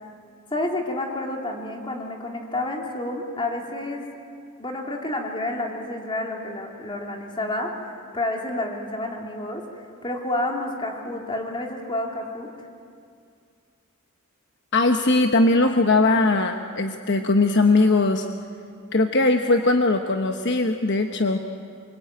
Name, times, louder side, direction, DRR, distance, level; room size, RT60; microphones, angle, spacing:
voice 1, 0.5-4.0 4.6-9.6 10.0-12.7, left 1 dB, 25° left, 1 dB, 3.3 m, -29 dB
voice 2, 14.7-18.3 18.9-21.4, left 2 dB, 55° left, 5 dB, 1.1 m, -20 dB
27.0 x 24.0 x 9.0 m, 2.3 s
head